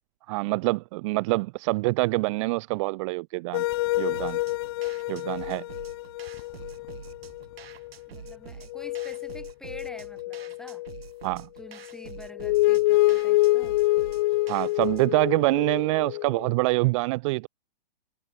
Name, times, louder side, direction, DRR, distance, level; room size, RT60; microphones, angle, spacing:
voice 1, 0.3-3.6 4.0-4.4 5.1-5.6 11.2-11.5 14.5-17.5, right 24 dB, 30° right, 0.9 m, -25 dB
sound 1, 3.5-7.9 8.3-8.4 8.7-11.3 11.9-16.5, left 19 dB, 25° left, 0.4 m, -27 dB
sound 2, 4.1-15.1, right 8 dB, 75° right, 3.3 m, -46 dB
voice 2, 8.1-10.9 11.6-13.8, left 1 dB, ahead, 2.4 m, -47 dB
hypercardioid pair, 145°, 31 cm